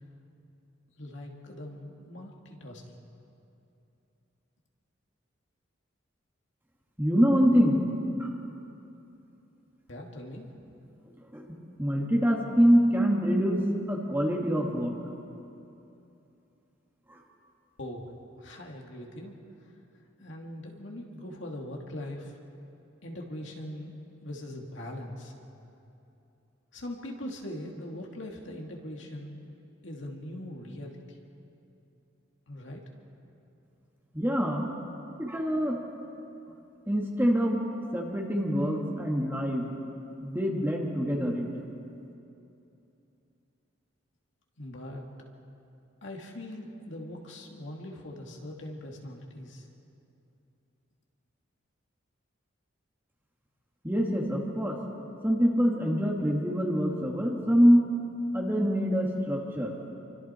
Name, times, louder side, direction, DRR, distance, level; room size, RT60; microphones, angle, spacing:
voice 1, 1.0-3.1 9.9-10.5 17.8-18.1 18.4-19.4 20.2-22.4 23.0-25.3 26.7-29.4 29.8-31.2 32.5-32.8 44.6-45.1 46.0-49.7, left 1 dB, 65° left, 0 dB, 2.6 m, -41 dB
voice 2, 7.0-7.8 8.2-8.3 11.0-14.9 17.1-17.2 34.1-34.7 35.2-35.8 36.9-37.6 37.9-39.7 40.2-41.5 53.8-54.8 55.2-58.0 58.3-59.8, equal, 10° right, -1 dB, 2.3 m, -25 dB
28.0 x 24.0 x 4.5 m, 2.8 s
head